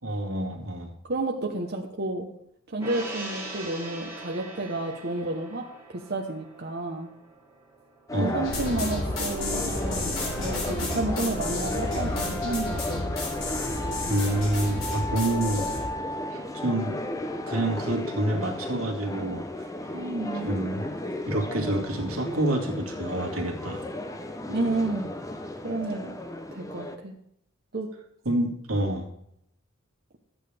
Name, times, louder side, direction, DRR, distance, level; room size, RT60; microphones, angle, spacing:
voice 1, 0.0-0.9 8.1-8.4 14.1-15.7 16.3-17.0 17.5-19.7 20.5-20.8 21.3-23.8 28.3-29.1, right 1 dB, 85° right, 1 dB, 2.1 m, -28 dB
voice 2, 1.1-2.3 2.7-7.1 8.2-13.1 19.9-20.6 24.5-25.1 25.6-26.1 26.5-27.1 27.7-27.9, right 2 dB, 50° right, 1 dB, 1.0 m, -31 dB
Gong, 2.8-9.4 9.8-9.9, right 1 dB, 15° right, 2.5 m, -42 dB
sound 1, 8.1-27.0, left 1 dB, 15° left, 0.6 m, -34 dB
sound 2, 8.4-15.9, left 2 dB, 70° left, 4.2 m, -32 dB
13.0 x 9.1 x 3.4 m, 0.75 s
head